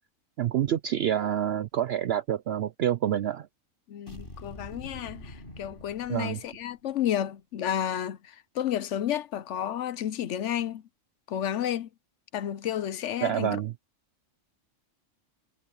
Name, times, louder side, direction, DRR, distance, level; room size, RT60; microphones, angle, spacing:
voice 1, 0.4-3.5 6.1-6.4 13.2-13.7, right 10 dB, 65° right, 0.7 m, -27 dB
voice 2, 3.9-10.8 11.3-11.9 12.3-13.6, left 10 dB, 65° left, 1.0 m, -31 dB
sound 1, 4.1-6.8, left 1 dB, 40° left, 5.6 m, -45 dB
omnidirectional pair, 1.4 m